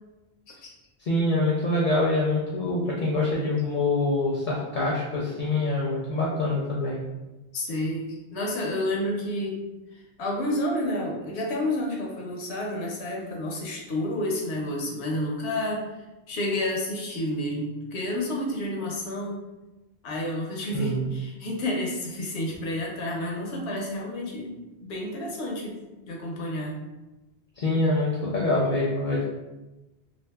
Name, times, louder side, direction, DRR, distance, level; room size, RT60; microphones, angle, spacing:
voice 1, 1.0-7.0 20.7-21.1 27.6-29.2, left 2 dB, 55° left, -4 dB, 0.6 m, -25 dB
voice 2, 7.5-9.6 9.9-19.4 20.0-24.5 24.8-25.8 26.1-26.8, left 1 dB, 85° left, -1 dB, 0.9 m, -30 dB
2.6 x 2.5 x 2.2 m, 1.0 s
omnidirectional pair, 1.1 m